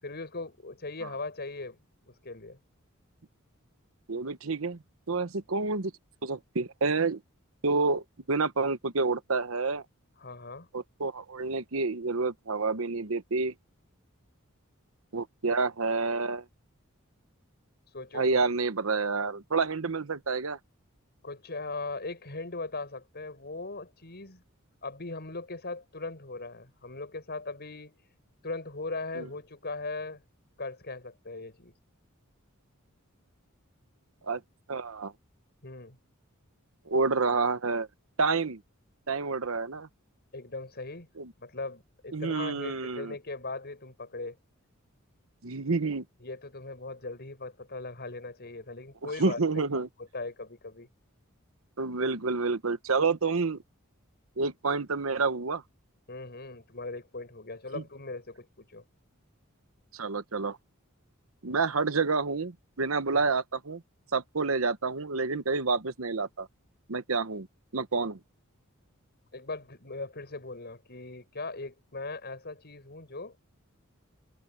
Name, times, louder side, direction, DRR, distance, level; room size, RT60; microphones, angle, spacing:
voice 1, 0.0-1.8 2.1-2.6 10.2-10.7 17.9-18.4 21.2-24.4 24.8-28.0 28.4-30.2 30.6-31.7 35.6-36.0 40.3-41.1 41.4-44.4 46.2-49.4 50.0-50.9 56.1-58.9 63.1-63.3 69.3-73.4, left 3 dB, 50° left, 7.2 m, -39 dB
voice 2, 4.1-4.8 5.1-5.9 6.2-7.2 7.6-9.8 10.7-13.5 15.1-16.4 18.1-20.6 29.2-29.3 34.2-34.4 34.7-35.1 36.9-37.9 38.2-38.6 39.1-39.9 41.2-41.3 42.1-43.1 45.4-46.0 49.2-49.9 51.8-53.6 54.4-55.6 57.7-57.8 59.9-60.6 61.4-63.8 64.1-66.5 66.9-67.5 67.7-68.2, right 4 dB, 75° right, 1.0 m, -28 dB
head